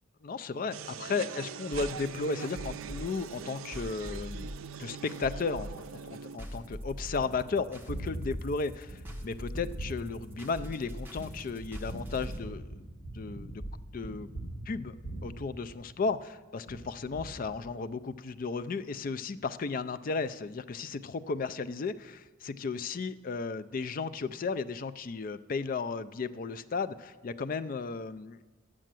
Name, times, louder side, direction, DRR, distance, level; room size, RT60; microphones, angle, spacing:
voice 1, 0.2-4.5 4.8-5.7 6.1-12.8 13.1-13.6 13.9-14.3 14.7-14.9 15.2-28.4, left 4 dB, 40° left, 12 dB, 0.4 m, -34 dB
sound 1, 0.7-6.4, right 7 dB, 75° right, 0.5 m, -42 dB
sound 2, 1.7-12.4, equal, 10° right, 1.1 m, -42 dB
Gunshot gunfire, 6.6-16.2 16.7-18.1, right 1 dB, 70° left, 1.9 m, -43 dB
9.2 x 7.6 x 7.5 m, 1.2 s
head